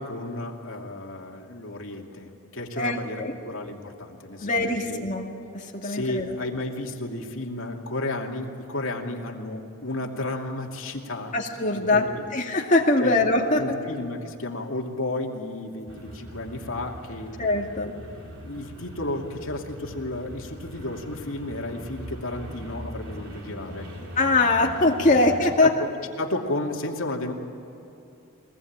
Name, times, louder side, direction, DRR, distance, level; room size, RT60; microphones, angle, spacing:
voice 1, 0.0-5.1 5.8-11.3 11.7-12.3 13.0-13.2 13.6-17.3 17.8-18.0 18.4-23.9 25.6-27.3, left 2 dB, 70° left, 1 dB, 2.6 m, -33 dB
voice 2, 2.8-3.3 4.4-5.3 5.7-6.3 11.3-13.8 17.4-17.9 24.2-25.7, left 2 dB, 35° left, 0 dB, 2.3 m, -22 dB
sound 1, 15.9-25.4, equal, 85° right, 3.9 m, -41 dB
23.0 x 19.5 x 8.8 m, 2.9 s
head